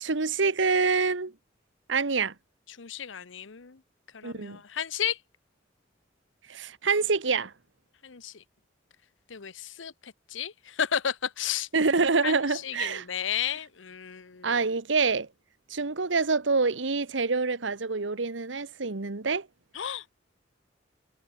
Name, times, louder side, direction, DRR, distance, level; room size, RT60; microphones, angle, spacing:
voice 1, 0.0-1.3 1.9-2.3 4.2-4.6 6.5-7.5 11.7-13.0 14.4-15.3 15.7-19.5, right 4 dB, 75° right, 1.2 m, -26 dB
voice 2, 2.8-3.8 4.1-5.2 8.0-8.4 9.3-11.7 12.2-14.6 19.7-20.1, left 8 dB, 85° left, 0.9 m, -33 dB
head